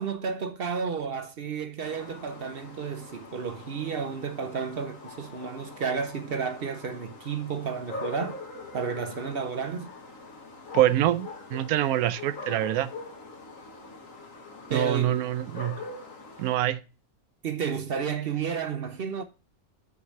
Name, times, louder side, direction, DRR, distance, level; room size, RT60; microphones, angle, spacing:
voice 1, 0.0-8.4 8.7-9.9 14.7-15.2 17.4-19.2, right 6 dB, 50° right, 0.8 m, -32 dB
sound 1, 1.8-16.6, left 3 dB, 65° left, 2.0 m, -43 dB
voice 2, 10.7-12.9 14.7-15.8 16.4-16.8, right 13 dB, 80° right, 1.1 m, -25 dB
6.6 x 4.8 x 6.8 m
omnidirectional pair, 1.5 m